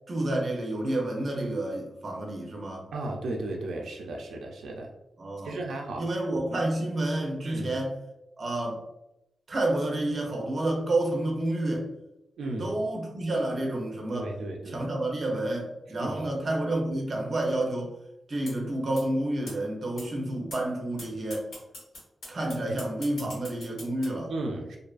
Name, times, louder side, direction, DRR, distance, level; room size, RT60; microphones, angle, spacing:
voice 1, 0.1-2.9 5.2-5.5 6.0-7.9 8.4-8.8 9.5-11.9 12.6-14.3 14.7-17.9 18.3-21.5 22.3-24.3, right 1 dB, 35° right, 0 dB, 0.5 m, -29 dB
voice 2, 2.9-4.9 5.4-6.0 6.3-6.5 7.4-7.7 12.4-12.7 14.1-14.9 16.0-16.3 24.3-24.8, right 2 dB, 90° right, 1 dB, 0.3 m, -35 dB
sound 1, 18.5-18.6 18.9-19.0 19.5-19.6 20.0-20.1 20.5-20.6 21.0-21.1 21.3-24.0, left 1 dB, 90° left, 1.4 m, -41 dB
2.5 x 2.3 x 2.3 m, 0.89 s
wide cardioid pair, 165°, 0 cm